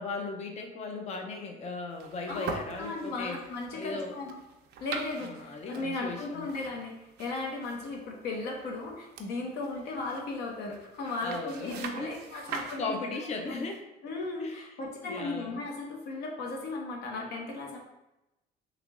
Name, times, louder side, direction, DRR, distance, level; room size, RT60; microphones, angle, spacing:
voice 1, 0.0-3.4 3.7-4.2 5.2-6.5 11.2-12.2 12.5-13.8 14.4-15.6, left 3 dB, 40° left, 3 dB, 0.5 m, -37 dB
sound 1, 1.9-12.8, right 5 dB, 70° right, 0.5 m, -44 dB
voice 2, 2.8-4.4 4.8-6.9 7.2-13.6 14.0-17.8, left 3 dB, 75° left, 0 dB, 0.9 m, -36 dB
3.3 x 2.9 x 3.6 m, 0.96 s
cardioid pair, 110°, 17 cm